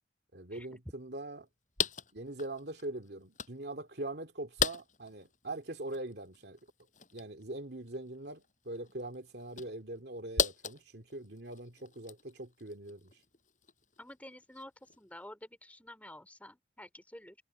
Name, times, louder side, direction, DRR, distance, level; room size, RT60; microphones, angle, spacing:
voice 1, 0.3-1.5 2.1-6.6 7.1-13.1, right 2 dB, 65° right, 2.5 m, -42 dB
sound 1, 1.2-1.3 1.8-3.7 4.1-15.2, left 6 dB, 45° left, 7.8 m, -39 dB
voice 2, 14.0-17.4, left 1 dB, 10° left, 4.5 m, -50 dB
head